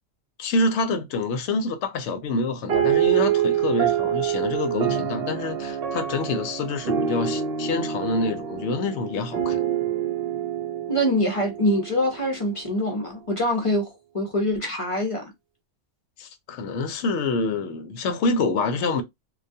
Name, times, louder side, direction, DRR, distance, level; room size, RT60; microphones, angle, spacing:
voice 1, 0.4-9.6 16.2-19.0, left 3 dB, 70° left, 0.8 m, -26 dB
sound 1, 2.7-12.4, right 9 dB, 60° right, 0.7 m, -26 dB
voice 2, 10.9-13.9 14.1-15.2, equal, 35° left, 0.5 m, -24 dB
2.3 x 2.2 x 2.6 m
omnidirectional pair, 1.3 m